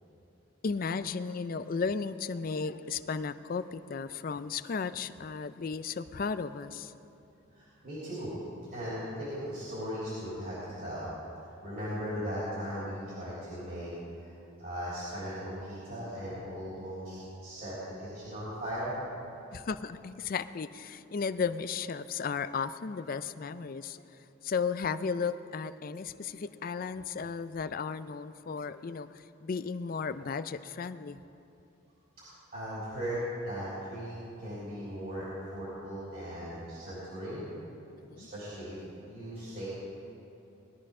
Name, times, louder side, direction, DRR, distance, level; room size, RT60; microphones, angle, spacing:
voice 1, 0.6-6.9 19.5-24.0 24.4-31.2 38.0-38.3, left 5 dB, 45° left, 13 dB, 0.4 m, -34 dB
voice 2, 7.5-8.3 8.7-11.1 11.4-13.9 14.2-14.3 14.6-19.0 32.2-37.4 38.2-38.8 39.1-39.7, equal, 45° right, -10 dB, 3.9 m, -38 dB
20.0 x 13.0 x 3.7 m, 2.8 s
head